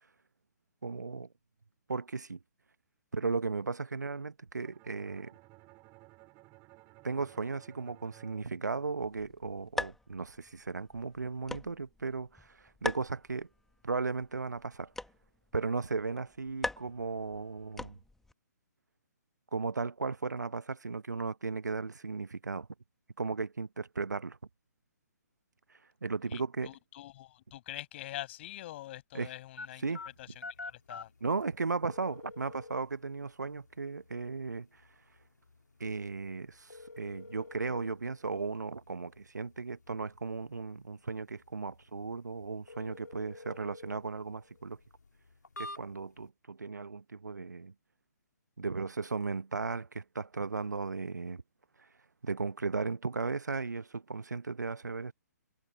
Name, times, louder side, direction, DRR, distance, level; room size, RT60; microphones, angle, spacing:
voice 1, 0.8-1.3 1.9-2.4 3.1-5.3 7.0-13.5 13.8-14.9 15.5-18.0 19.5-22.7 23.2-24.4 26.0-26.7 29.1-29.3 29.8-30.0 31.2-34.7 35.8-44.8 45.6-47.7 48.6-51.4 52.2-55.1, right 4 dB, 75° right, 1.1 m, -36 dB
Bowed string instrument, 4.6-9.5, right 24 dB, 25° right, 5.8 m, -58 dB
sound 1, 9.0-18.3, left 2 dB, 5° left, 1.8 m, -43 dB
voice 2, 26.3-29.8 30.2-31.1, left 15 dB, 40° left, 6.2 m, -45 dB
sound 2, 29.6-46.3, left 3 dB, 75° left, 2.0 m, -50 dB
figure-of-eight pair, 130°, 9 cm